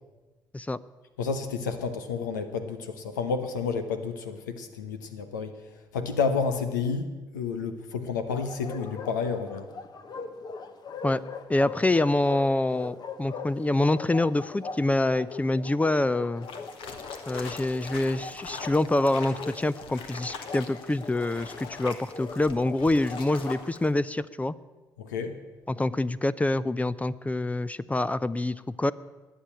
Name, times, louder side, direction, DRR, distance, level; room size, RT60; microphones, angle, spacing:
voice 1, 1.2-5.6 5.9-9.7 25.0-25.4, left 5 dB, 85° left, 9 dB, 0.9 m, -30 dB
Bark, 8.3-23.6, left 4 dB, 45° left, 1.3 m, -41 dB
voice 2, 11.5-16.5 17.3-24.5 25.7-28.9, left 2 dB, 15° left, 17 dB, 0.5 m, -26 dB
sound 1, 16.4-23.9, left 5 dB, 65° left, 1.4 m, -43 dB
19.5 x 7.7 x 8.7 m, 1.2 s
hypercardioid pair, 50°, 10 cm